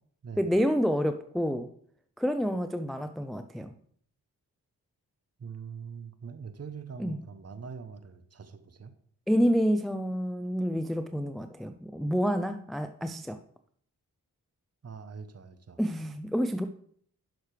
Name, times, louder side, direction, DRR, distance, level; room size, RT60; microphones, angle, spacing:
voice 1, 0.4-1.7 2.2-3.7 7.0-7.2 9.3-13.4 15.8-16.6, equal, ahead, 9 dB, 0.5 m, -28 dB
voice 2, 5.4-8.9 14.8-15.8, right 6 dB, 40° right, 9 dB, 0.9 m, -43 dB
10.5 x 6.5 x 3.3 m, 0.62 s
cardioid pair, 50°, 39 cm